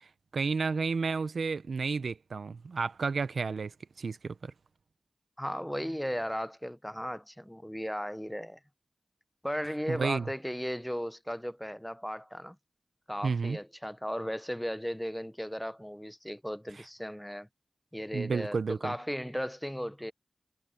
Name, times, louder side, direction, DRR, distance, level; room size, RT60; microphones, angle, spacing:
voice 1, 0.3-3.7 4.0-4.5 9.9-10.3 13.2-13.6 18.1-18.9, right 4 dB, 90° right, 0.7 m, -31 dB
voice 2, 5.4-8.6 9.4-12.6 13.1-17.5 17.9-20.1, equal, 5° left, 0.8 m, -36 dB
wide cardioid pair, 55°, 0 cm